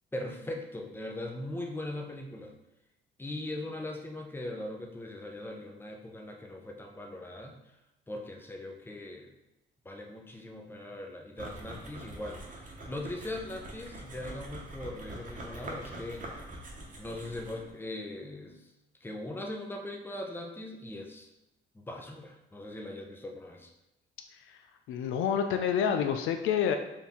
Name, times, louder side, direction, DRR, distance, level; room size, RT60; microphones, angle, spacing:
voice 1, 0.1-2.5 3.2-7.6 8.1-9.3 9.8-16.4 17.0-18.6 19.0-21.3 21.7-23.7, left 1 dB, 10° left, 1 dB, 0.7 m, -40 dB
sound 1, 11.4-17.7, right 1 dB, 40° right, 1.0 m, -44 dB
voice 2, 24.9-26.8, left 8 dB, 85° left, 6 dB, 0.4 m, -28 dB
4.3 x 2.7 x 3.6 m, 0.92 s
cardioid pair, 90°, 20 cm